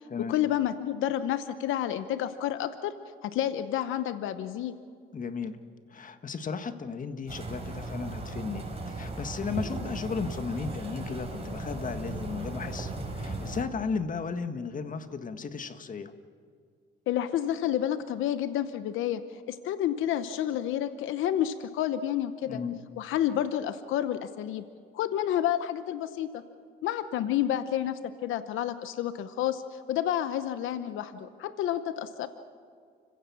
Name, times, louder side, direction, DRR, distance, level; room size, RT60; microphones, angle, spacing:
voice 1, 0.2-2.9 3.2-4.8 17.1-19.2 19.5-22.6 23.0-24.6 24.9-26.4 26.8-32.3, left 11 dB, 85° left, 11 dB, 0.9 m, -30 dB
voice 2, 5.1-5.6 5.9-16.1 22.5-22.8, left 5 dB, 40° left, 9 dB, 1.6 m, -35 dB
sound 1, 7.3-13.6, right 2 dB, 30° right, 5.7 m, -37 dB
30.0 x 16.0 x 7.2 m, 2.2 s
cardioid pair, 90°, 20 cm